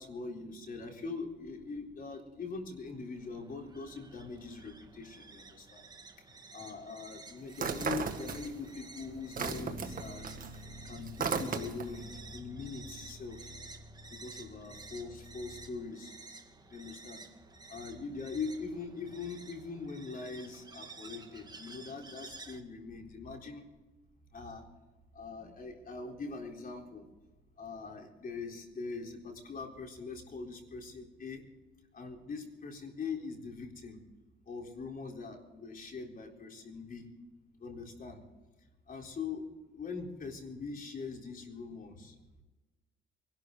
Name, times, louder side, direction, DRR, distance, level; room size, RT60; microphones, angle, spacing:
voice 1, 0.0-5.8 6.5-10.2 10.8-13.5 14.2-16.1 16.7-17.2 17.7-23.6 24.3-24.6 25.1-27.0 27.6-31.4 31.9-34.0 34.5-37.1 37.6-38.2 38.9-42.1, left 4 dB, 45° left, 2 dB, 4.0 m, -42 dB
sound 1, 2.9-22.6, right 3 dB, 20° right, 1.8 m, -52 dB
sound 2, 7.5-8.8 9.1-12.0, right 5 dB, 45° right, 1.9 m, -36 dB
Bass guitar, 9.4-15.7, left 1 dB, 30° left, 2.4 m, -49 dB
24.0 x 12.0 x 4.0 m, 1.2 s
cardioid pair, 90°, 20 cm